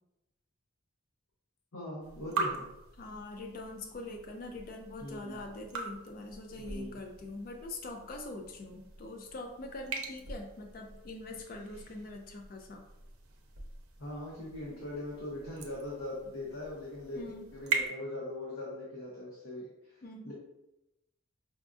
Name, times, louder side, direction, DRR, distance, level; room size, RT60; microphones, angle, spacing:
voice 1, 1.7-2.6 5.0-5.4 6.6-6.9 14.0-17.2 17.5-20.3, left 1 dB, 80° left, -4 dB, 0.7 m, -41 dB
sound 1, 2.0-17.9, right 4 dB, 85° right, 0.6 m, -42 dB
voice 2, 3.0-12.8 17.1-17.5 20.0-20.3, left 2 dB, 45° left, 3 dB, 0.3 m, -43 dB
4.9 x 2.3 x 2.4 m, 0.94 s
head